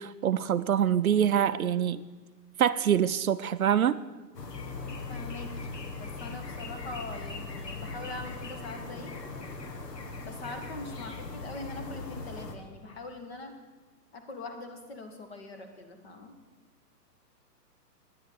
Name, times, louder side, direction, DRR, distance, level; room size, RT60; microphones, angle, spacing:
voice 1, 0.0-2.1 2.6-4.0, right 9 dB, 60° right, 13 dB, 0.5 m, -25 dB
sound 1, 4.3-12.6, left 3 dB, 80° left, 1.8 m, -39 dB
voice 2, 5.1-5.7 6.0-9.1 10.2-13.5 14.1-16.3, left 2 dB, 40° left, 6 dB, 1.6 m, -42 dB
10.0 x 9.9 x 6.7 m, 1.3 s
hypercardioid pair, 175°, 48 cm